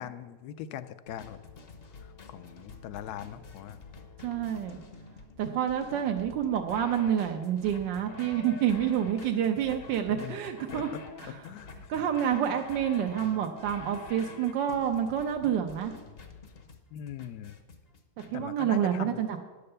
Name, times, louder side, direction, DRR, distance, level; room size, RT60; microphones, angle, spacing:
voice 1, 0.0-1.4 2.0-3.8 10.1-10.4 10.7-11.7 16.9-17.6 18.3-19.2, left 10 dB, 70° left, 13 dB, 1.0 m, -41 dB
sound 1, 1.1-18.3, left 4 dB, 45° left, 0.8 m, -48 dB
voice 2, 4.2-4.8 5.4-10.9 11.2-11.3 11.9-15.9 18.3-19.4, right 9 dB, 85° right, 4 dB, 1.4 m, -28 dB
10.5 x 6.7 x 6.7 m, 1.3 s
omnidirectional pair, 1.9 m